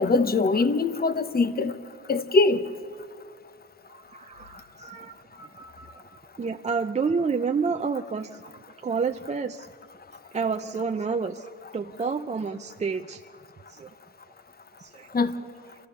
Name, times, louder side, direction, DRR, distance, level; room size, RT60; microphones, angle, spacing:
voice 1, 0.0-1.7 2.1-2.6 15.1-15.3, left 3 dB, 30° left, 1.0 m, -22 dB
voice 2, 3.9-8.3 8.8-9.7 10.3-13.2 13.7-13.9 14.8-15.2, right 5 dB, 25° right, 0.5 m, -30 dB
27.5 x 14.0 x 7.0 m
cardioid pair, 90°, 30 cm